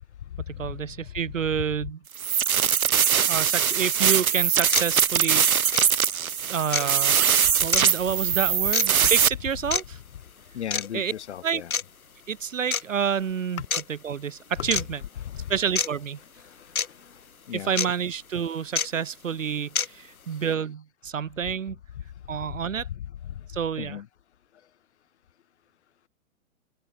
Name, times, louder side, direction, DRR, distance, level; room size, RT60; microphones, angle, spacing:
voice 1, 0.5-2.0 3.3-5.8 6.5-7.1 7.6-10.0 10.9-11.1 11.4-11.6 12.3-13.6 13.9-15.0 15.5-16.2 17.5-21.8 22.3-22.9 23.5-24.0, right 7 dB, 65° right, 1.2 m, -29 dB
sound 1, 2.1-9.3, right 8 dB, 90° right, 0.5 m, -22 dB
sound 2, 4.0-4.1 4.7-4.9 5.7-5.9 6.7-6.9 7.7-7.9 8.7-8.9 9.7-9.8 10.7-10.9 11.7-11.8 12.7-12.8 13.7-13.8 14.7-14.8 15.8-15.9 16.8-16.9 17.8-17.9 18.8-18.9 19.8-19.9, left 5 dB, 85° left, 0.8 m, -25 dB
voice 2, 10.5-11.7 13.6-13.7 14.6-14.7 15.3-15.5 17.5-17.7 22.9-23.0 23.3-23.4 23.8-24.1, left 10 dB, 50° left, 2.6 m, -35 dB
figure-of-eight pair, 115°, 42 cm